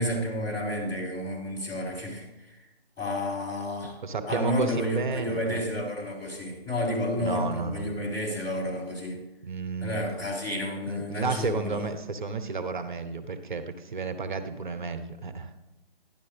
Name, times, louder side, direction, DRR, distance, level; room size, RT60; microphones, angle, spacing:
voice 1, 0.0-2.2 3.0-4.0 4.3-9.2 9.8-11.8, left 1 dB, 10° left, -9 dB, 3.0 m, -31 dB
voice 2, 4.0-5.6 7.2-7.9 9.4-10.0 10.9-15.5, right 4 dB, 50° right, 9 dB, 0.9 m, -32 dB
12.0 x 10.5 x 3.3 m, 1.0 s
figure-of-eight pair, 155°, 30 cm